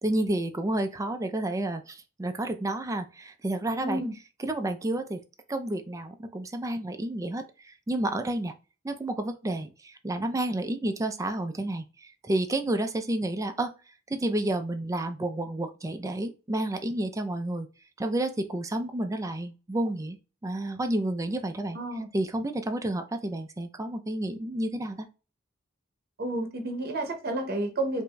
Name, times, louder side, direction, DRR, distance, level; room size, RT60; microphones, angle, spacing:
voice 1, 0.0-4.0 4.4-5.2 5.5-8.5 8.8-13.7 14.1-17.7 18.0-20.2 20.4-21.8 22.1-25.1, right 1 dB, 15° right, 0.4 m, -30 dB
voice 2, 3.8-4.2 21.7-22.1 26.2-28.0, right 1 dB, 50° right, 0.8 m, -30 dB
4.7 x 2.6 x 2.2 m
head